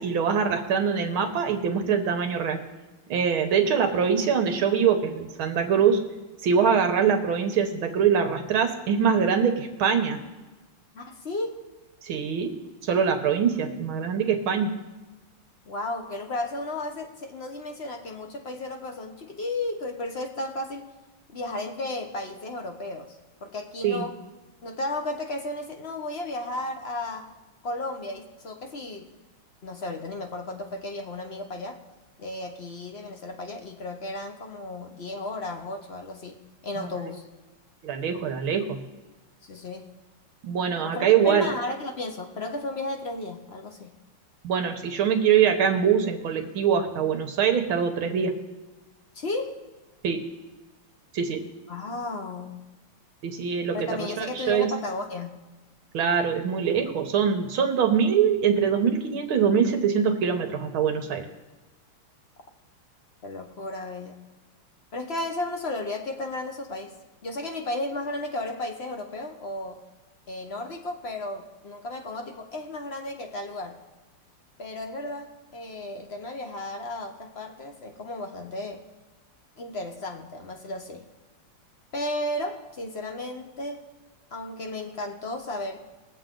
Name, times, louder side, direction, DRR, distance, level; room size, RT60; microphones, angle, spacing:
voice 1, 0.0-2.6 3.1-6.0 6.4-10.2 12.0-12.5 12.8-14.7 23.8-24.1 36.8-36.9 37.8-38.8 40.4-41.5 44.4-48.3 50.0-50.2 51.1-51.4 53.2-54.7 55.9-61.2, right 7 dB, 70° right, 6 dB, 1.8 m, -23 dB
voice 2, 10.9-11.6 13.5-13.9 15.7-20.9 21.3-24.2 24.6-27.3 27.6-29.1 29.6-31.8 32.2-37.2 39.4-39.9 40.8-43.9 49.1-49.6 51.7-52.7 53.7-55.3 63.2-64.2 64.9-67.0 67.2-69.8 70.3-73.8 74.6-78.8 79.6-81.1 81.9-83.8 84.3-85.8, left 2 dB, 40° left, 4 dB, 1.0 m, -34 dB
21.5 x 7.4 x 3.8 m, 1.2 s
omnidirectional pair, 2.4 m